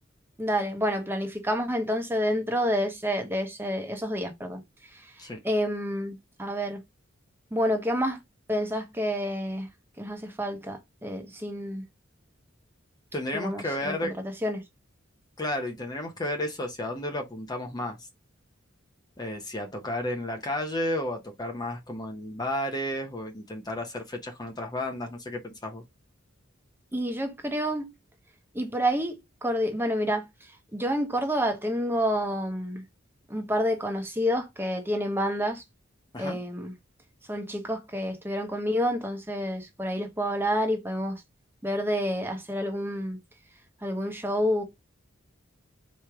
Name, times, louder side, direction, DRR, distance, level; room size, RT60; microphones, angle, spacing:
voice 1, 0.4-4.6 4.9-5.1 5.4-6.8 7.5-8.2 8.5-9.7 10.0-11.8 13.3-14.1 14.4-14.6 26.9-27.9 28.5-32.8 33.3-35.6 36.2-36.7 37.3-41.2 41.6-43.2 43.8-44.6, equal, 10° right, 1.0 m, -29 dB
voice 2, 13.1-14.1 15.4-18.0 19.2-25.8 36.1-36.4, left 1 dB, 20° left, 0.8 m, -32 dB
4.5 x 3.1 x 3.5 m
head